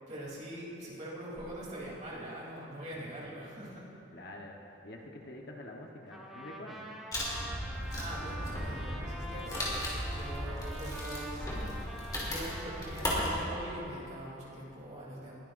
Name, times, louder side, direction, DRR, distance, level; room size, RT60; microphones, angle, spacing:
voice 1, 0.1-3.9 7.9-11.8 12.2-15.3, right 1 dB, 40° right, -6 dB, 3.2 m, -43 dB
voice 2, 4.1-6.9, left 1 dB, 55° left, 0 dB, 1.1 m, -47 dB
Trumpet, 6.1-13.8, equal, ahead, 1.1 m, -45 dB
Wood, 7.1-13.3, equal, 20° left, 2.8 m, -36 dB
20.5 x 13.5 x 2.6 m, 3.0 s
head